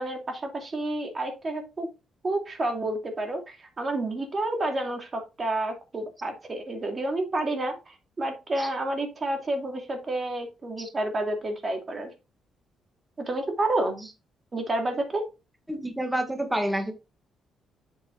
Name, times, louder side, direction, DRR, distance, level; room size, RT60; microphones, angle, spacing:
voice 1, 0.0-1.9 2.2-12.1 13.2-14.1 14.5-15.2, right 2 dB, 30° right, 4 dB, 2.6 m, -30 dB
voice 2, 15.7-16.9, right 1 dB, 5° right, 6 dB, 1.9 m, -28 dB
8.0 x 7.8 x 2.5 m, 0.27 s
cardioid pair, 125°, 0 cm